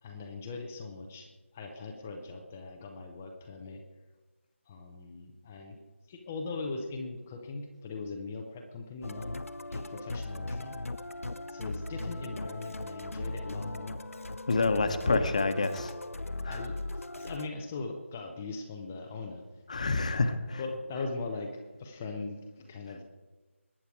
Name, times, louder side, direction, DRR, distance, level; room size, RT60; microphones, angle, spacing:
voice 1, 0.0-3.8 4.7-5.8 6.1-9.3 9.7-10.8 11.5-14.0 15.0-15.4 16.5-16.8 17.2-19.4 20.1-20.3 20.6-21.5 21.8-23.0, left 3 dB, 5° left, 3 dB, 0.4 m, -40 dB
Musical instrument, 9.0-17.5, left 2 dB, 90° left, 0.8 m, -38 dB
voice 2, 14.5-15.9 16.4-16.6 19.7-20.6, left 3 dB, 30° left, 9 dB, 1.0 m, -28 dB
21.5 x 9.8 x 4.6 m, 1.2 s
figure-of-eight pair, 170°, 7 cm